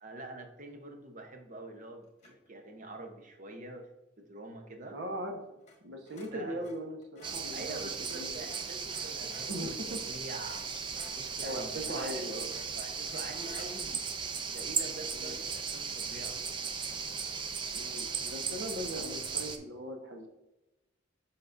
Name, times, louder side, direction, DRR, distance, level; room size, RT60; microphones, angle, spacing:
voice 1, 0.0-3.9 4.2-5.0 6.3-6.7 7.5-10.6 11.2-12.3 12.7-14.0 14.5-16.4, right 2 dB, 40° right, 4 dB, 0.9 m, -45 dB
sound 1, 2.2-2.5 5.6-5.8 6.1-9.6 10.0-10.2 10.4-13.7, left 3 dB, 35° left, 1.2 m, -54 dB
voice 2, 4.9-5.4 5.8-8.4 9.5-10.0 11.4-12.5 15.1-15.3 17.7-20.3, equal, 65° right, 3 dB, 1.1 m, -39 dB
sound 2, 7.2-19.6, right 5 dB, 25° right, 0.4 m, -37 dB
7.3 x 5.2 x 2.6 m, 0.96 s
head